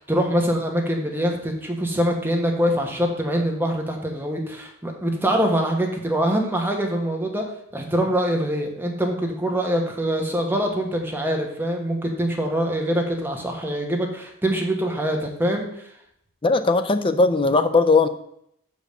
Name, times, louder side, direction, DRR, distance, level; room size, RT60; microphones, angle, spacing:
voice 1, 0.0-7.4 7.7-15.8, equal, 10° right, 1 dB, 1.2 m, -24 dB
voice 2, 16.4-18.1, left 3 dB, 25° left, 10 dB, 0.5 m, -18 dB
6.2 x 5.4 x 6.4 m, 0.72 s
head